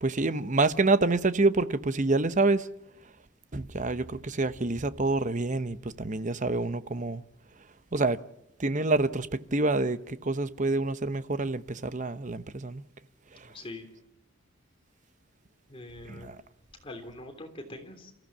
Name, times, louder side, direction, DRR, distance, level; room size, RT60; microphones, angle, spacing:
voice 1, 0.0-2.7 3.5-7.2 7.9-8.2 8.6-12.8 16.1-16.4, right 3 dB, 35° right, 0.9 m, -27 dB
voice 2, 13.3-13.9 15.7-16.3 16.8-18.1, left 2 dB, 25° left, 3.2 m, -43 dB
28.0 x 15.0 x 7.2 m
head